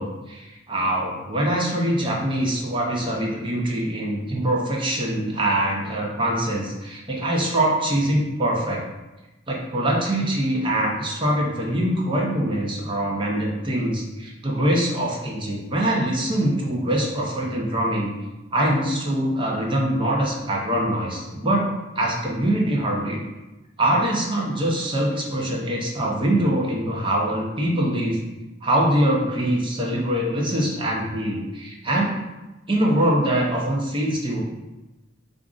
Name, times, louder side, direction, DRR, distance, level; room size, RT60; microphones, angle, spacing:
voice 1, 0.0-8.8 9.5-18.1 18.5-21.7 21.9-23.2 23.8-28.2 28.6-32.1 32.7-34.4, right 1 dB, 25° right, -2 dB, 0.6 m, -23 dB
4.9 x 2.5 x 2.4 m, 1.0 s
head